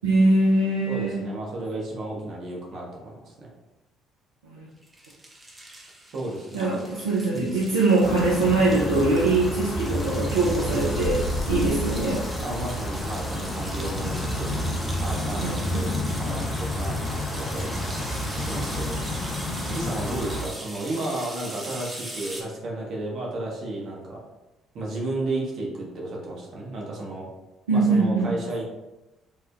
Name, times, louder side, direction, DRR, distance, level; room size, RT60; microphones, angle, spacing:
voice 1, 0.0-1.3 4.4-4.7 6.5-11.2 11.5-12.2 15.4-15.9 27.7-28.3, right 2 dB, 85° right, -6 dB, 0.4 m, -22 dB
voice 2, 0.9-3.5 6.1-6.7 7.3-7.5 12.4-14.5 15.0-15.9 16.2-16.4 16.7-18.1 18.4-19.0 19.7-24.2 24.7-27.3 27.7-28.6, right 2 dB, 60° right, -2 dB, 0.8 m, -33 dB
sound 1, 4.8-22.4, right 1 dB, 20° right, 0.7 m, -40 dB
sound 2, 8.0-20.5, left 1 dB, 45° left, 0.4 m, -29 dB
3.1 x 2.1 x 2.4 m, 1.0 s
hypercardioid pair, 50°, 0 cm